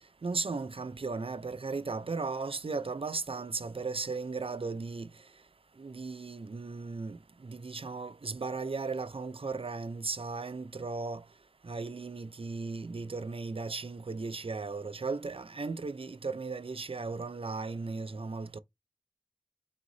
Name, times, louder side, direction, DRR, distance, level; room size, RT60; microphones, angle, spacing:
voice 1, 0.2-5.1 5.8-11.2 11.6-18.6, right 4 dB, 80° right, 0.4 m, -36 dB
3.8 x 3.7 x 3.2 m
wide cardioid pair, 40°, 9 cm